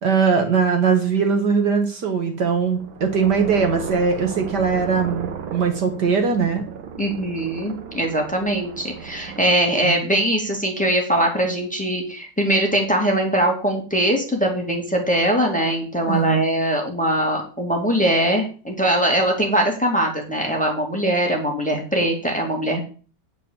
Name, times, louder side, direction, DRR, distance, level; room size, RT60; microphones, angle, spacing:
voice 1, 0.0-6.6 9.8-10.0 16.1-16.4, right 5 dB, 60° right, 5 dB, 1.9 m, -20 dB
sound 1, 2.5-9.6, right 6 dB, 85° right, 1.9 m, -35 dB
voice 2, 7.0-22.8, right 1 dB, 5° left, 1 dB, 2.3 m, -21 dB
9.7 x 5.2 x 7.1 m, 0.38 s
omnidirectional pair, 2.1 m